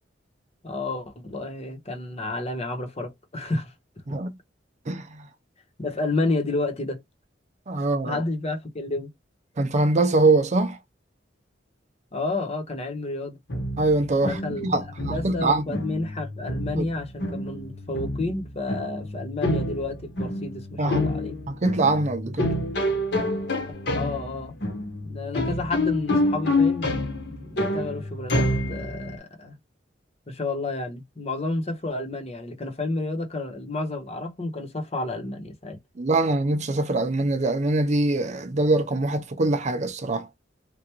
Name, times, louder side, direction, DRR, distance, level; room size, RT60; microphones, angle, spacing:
voice 1, 0.6-3.7 5.8-7.0 8.0-9.1 12.1-13.4 14.2-21.4 23.9-24.6 25.0-29.6 30.3-35.8, left 2 dB, 35° left, 1.1 m, -30 dB
voice 2, 4.9-5.2 7.7-8.2 9.6-10.8 13.8-14.3 14.6-15.6 16.8-16.9 20.8-21.1 21.5-22.5 36.0-40.3, right 2 dB, 40° right, 0.5 m, -23 dB
sound 1, 13.5-29.2, left 1 dB, 70° left, 1.4 m, -28 dB
3.4 x 2.5 x 3.0 m
head